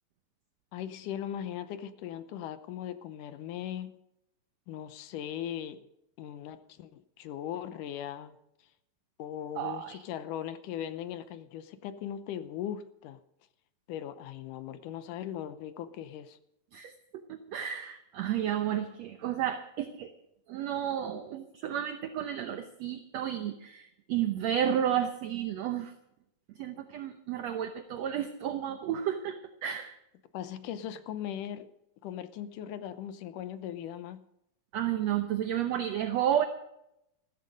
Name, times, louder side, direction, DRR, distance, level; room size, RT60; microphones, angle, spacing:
voice 1, 0.7-3.9 4.7-5.8 6.2-8.4 9.2-13.2 13.9-16.4 30.3-31.7 32.0-34.2, left 10 dB, 75° left, 12 dB, 2.2 m, -39 dB
voice 2, 9.6-10.0 16.7-16.9 17.3-20.1 20.5-25.9 26.5-30.0 34.7-36.4, right 10 dB, 70° right, 8 dB, 1.6 m, -32 dB
15.0 x 14.0 x 5.2 m, 0.82 s
omnidirectional pair, 4.0 m